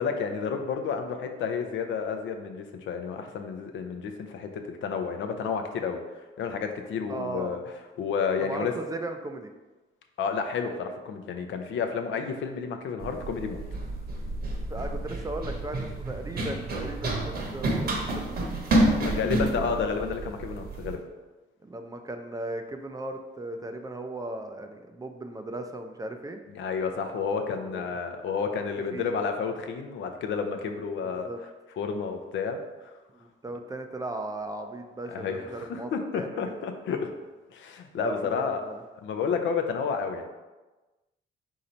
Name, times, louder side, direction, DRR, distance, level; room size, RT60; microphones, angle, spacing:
voice 1, 0.0-6.0 6.4-7.6 8.0-8.7 10.2-13.6 19.0-21.0 26.5-31.3 31.8-32.9 35.1-37.1 37.5-38.6 39.0-40.3, left 6 dB, 70° left, 6 dB, 0.6 m, -31 dB
voice 2, 7.1-7.6 8.4-9.5 14.7-18.5 19.1-19.3 21.6-26.4 27.6-27.9 28.9-29.2 31.0-31.4 33.4-36.5 37.9-38.8, right 2 dB, 20° right, 6 dB, 0.4 m, -37 dB
Run, 13.0-21.0, right 1 dB, 50° right, 0.9 m, -29 dB
3.9 x 2.8 x 4.3 m, 1.2 s
cardioid pair, 90°, 20 cm